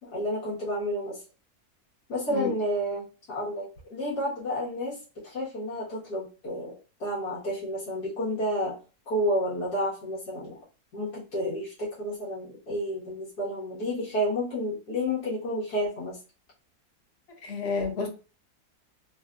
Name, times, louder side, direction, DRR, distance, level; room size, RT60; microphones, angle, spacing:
voice 1, 0.0-1.2 2.1-6.7 7.0-8.8 9.1-10.6 10.9-16.2, equal, 85° left, 2.0 m, -30 dB
voice 2, 17.4-18.1, left 4 dB, 50° left, 0.9 m, -30 dB
3.9 x 2.3 x 2.5 m
omnidirectional pair, 1.7 m